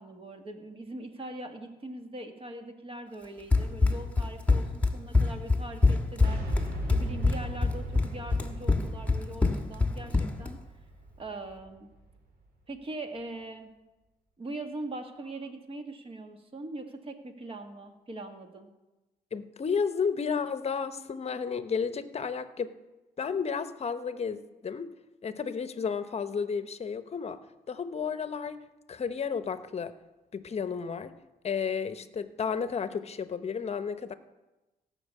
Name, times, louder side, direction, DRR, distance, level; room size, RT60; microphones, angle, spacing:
voice 1, 0.0-10.6 11.2-11.9 12.7-13.7 14.4-18.7, right 2 dB, 35° right, 5 dB, 1.7 m, -41 dB
Run, 3.5-10.5, left 3 dB, 10° left, 1.4 m, -25 dB
Boom, 6.2-12.1, right 1 dB, 75° right, 3.9 m, -39 dB
voice 2, 19.3-22.7 23.2-24.9 25.2-27.4 27.7-28.6 28.9-29.9 30.3-31.1 31.4-34.1, left 6 dB, 40° left, 12 dB, 0.9 m, -32 dB
16.5 x 6.1 x 8.2 m, 1.1 s
cardioid pair, 105°, 16 cm